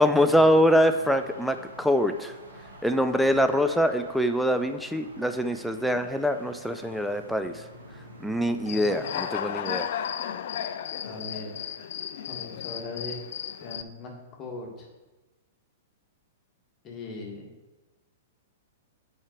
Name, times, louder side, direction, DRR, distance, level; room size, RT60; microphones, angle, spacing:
voice 1, 0.0-2.3 2.8-7.6 8.2-9.9, equal, ahead, 8 dB, 0.4 m, -24 dB
sound 1, 0.7-9.2, right 1 dB, 80° right, 1.8 m, -47 dB
Human voice / Cricket, 8.7-13.8, left 9 dB, 55° left, 0.4 m, -34 dB
voice 2, 11.0-11.5 12.3-13.2 13.6-14.9 16.8-17.5, left 3 dB, 30° left, -1 dB, 1.6 m, -39 dB
8.5 x 4.9 x 4.4 m, 1.1 s
figure-of-eight pair, 105°, 0 cm